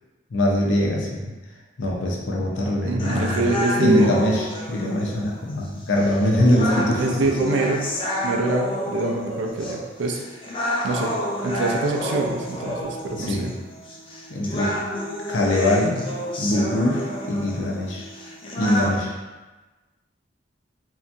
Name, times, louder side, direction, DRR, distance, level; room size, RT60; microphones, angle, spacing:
voice 1, 0.3-1.3 1.8-7.2 13.1-13.5 14.3-14.7 15.3-16.0 16.4-18.1 18.6-19.1, left 1 dB, 90° left, -2 dB, 0.5 m, -22 dB
voice 2, 2.8-4.1 7.0-7.9 8.2-10.2 10.8-11.1 11.4-13.5, right 2 dB, 80° right, 2 dB, 0.4 m, -24 dB
sound 1, 3.0-19.0, left 1 dB, 30° left, 0.3 m, -30 dB
Bark / Livestock farm animals working animals, 6.0-7.0 8.4-9.9 11.7-12.8, right 1 dB, 10° left, 0.8 m, -34 dB
2.8 x 2.2 x 2.5 m, 1.2 s
head